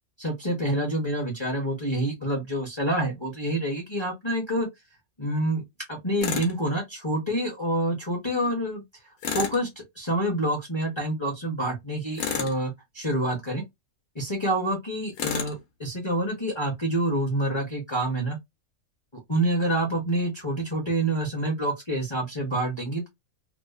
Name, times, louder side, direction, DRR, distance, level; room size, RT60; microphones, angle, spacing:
voice 1, 0.2-4.7 5.2-5.6 5.9-8.8 9.3-9.7 10.0-13.6 14.1-18.4 19.3-23.1, right 1 dB, 30° left, 0.5 m, -27 dB
Tools, 6.2-6.5 9.2-9.6 12.2-12.6 15.2-15.6, left 6 dB, 80° left, 1.1 m, -30 dB
2.9 x 2.0 x 2.2 m
omnidirectional pair, 1.5 m